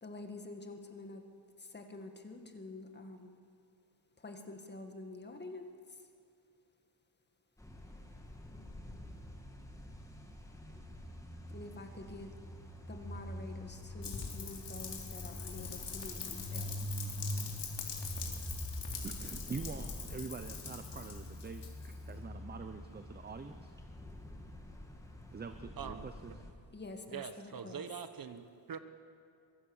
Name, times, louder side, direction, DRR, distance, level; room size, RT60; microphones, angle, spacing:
voice 1, 0.0-1.2 1.6-3.3 4.2-5.7 11.5-12.3 12.9-16.9 26.7-27.8, left 2 dB, 25° left, 5 dB, 1.8 m, -47 dB
sound 1, 7.6-26.5, left 1 dB, 5° left, 2.0 m, -45 dB
Rain, 14.0-22.1, left 6 dB, 65° left, 3.8 m, -44 dB
voice 2, 19.0-23.7 25.3-26.3, right 5 dB, 20° right, 8 dB, 0.7 m, -45 dB
voice 3, 27.1-28.8, right 7 dB, 50° right, 10 dB, 1.3 m, -43 dB
24.0 x 22.0 x 7.2 m, 2.6 s
wide cardioid pair, 175°, 45 cm